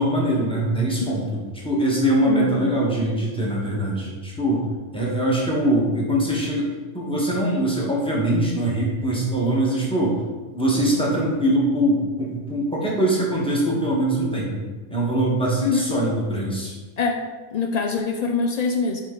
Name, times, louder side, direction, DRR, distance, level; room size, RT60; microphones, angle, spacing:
voice 1, 0.0-4.6 4.9-10.2 10.5-16.7, right 1 dB, 5° left, -5 dB, 1.4 m, -22 dB
voice 2, 2.3-2.7 15.6-15.9 17.0-17.2 17.5-19.0, left 5 dB, 75° left, 2 dB, 0.3 m, -24 dB
8.9 x 3.6 x 3.8 m, 1.3 s
omnidirectional pair, 1.4 m